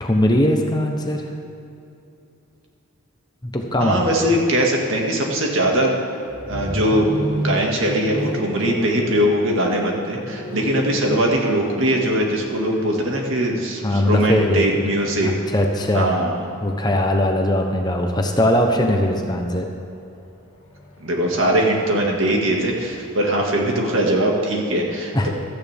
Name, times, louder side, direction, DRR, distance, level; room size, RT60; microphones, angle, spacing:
voice 1, 0.0-1.3 3.4-4.1 13.8-14.6 15.2-16.2 16.6-19.7 25.1-25.3, left 1 dB, 20° left, 2 dB, 0.9 m, -20 dB
voice 2, 3.8-6.0 6.5-15.3 15.9-16.3 21.0-25.3, right 1 dB, 60° right, 0 dB, 2.0 m, -21 dB
sound 1, 6.3-18.2 19.5-23.1, equal, 65° left, 2.1 m, -33 dB
16.0 x 13.0 x 3.6 m, 2.8 s
head